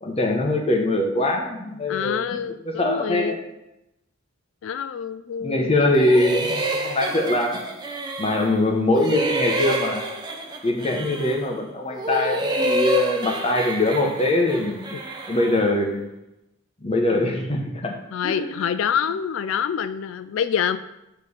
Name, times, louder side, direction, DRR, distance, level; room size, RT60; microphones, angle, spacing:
voice 1, 0.0-2.4 2.8-3.4 5.4-7.6 8.2-10.0 10.6-14.8 15.3-16.1 16.8-17.9 18.2-18.5, left 1 dB, 30° left, 2 dB, 0.9 m, -22 dB
voice 2, 1.9-3.4 4.6-5.9 14.9-15.0 17.1-17.2 18.1-20.8, left 8 dB, 65° left, 12 dB, 0.3 m, -26 dB
sound 1, 5.9-8.6 8.9-11.5 11.9-15.7, right 1 dB, 20° right, 0.7 m, -28 dB
6.7 x 3.3 x 5.4 m, 0.89 s
head